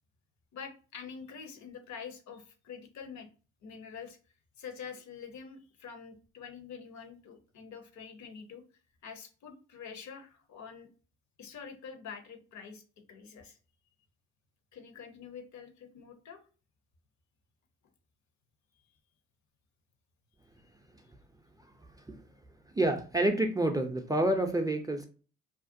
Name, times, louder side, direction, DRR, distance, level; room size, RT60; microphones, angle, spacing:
voice 1, 0.5-3.3 3.6-4.2 4.6-8.6 9.0-10.9 11.4-12.8 13.1-13.6 14.7-16.4, left 6 dB, 60° left, 6 dB, 0.7 m, -46 dB
voice 2, 22.7-25.1, right 1 dB, 10° right, 5 dB, 0.4 m, -28 dB
2.4 x 2.1 x 2.6 m, 0.36 s
hypercardioid pair, 55°, 32 cm